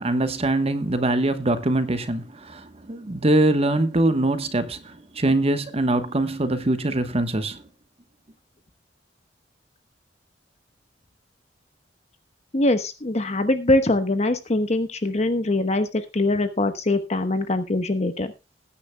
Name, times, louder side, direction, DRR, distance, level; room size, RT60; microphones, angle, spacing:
voice 1, 0.0-7.6, right 2 dB, 35° right, 1.1 m, -23 dB
voice 2, 12.5-18.3, left 2 dB, 40° left, 1.0 m, -23 dB
20.0 x 9.9 x 2.2 m
head